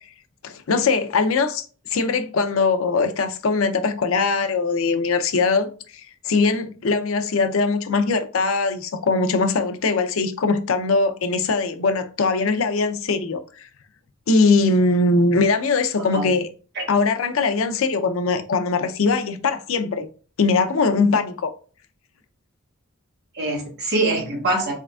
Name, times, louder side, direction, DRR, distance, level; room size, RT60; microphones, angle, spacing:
voice 1, 0.4-1.7 1.9-5.7 6.2-13.4 14.3-16.4 16.9-20.1 20.4-21.5, left 4 dB, 75° left, 0.5 m, -21 dB
voice 2, 15.9-16.3 16.7-16.8 23.3-24.7, right 2 dB, 55° right, 1.5 m, -24 dB
4.2 x 3.7 x 2.3 m
head